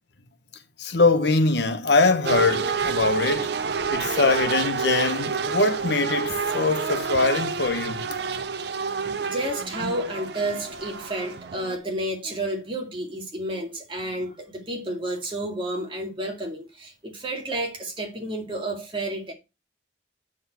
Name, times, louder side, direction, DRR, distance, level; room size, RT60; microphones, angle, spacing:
voice 1, 0.8-3.5 3.9-8.2, left 3 dB, 60° left, 1.0 m, -22 dB
sound 1, 2.2-11.8, right 5 dB, 60° right, 0.6 m, -29 dB
voice 2, 8.9-19.3, right 1 dB, 30° right, 2.1 m, -31 dB
7.4 x 6.5 x 4.4 m
head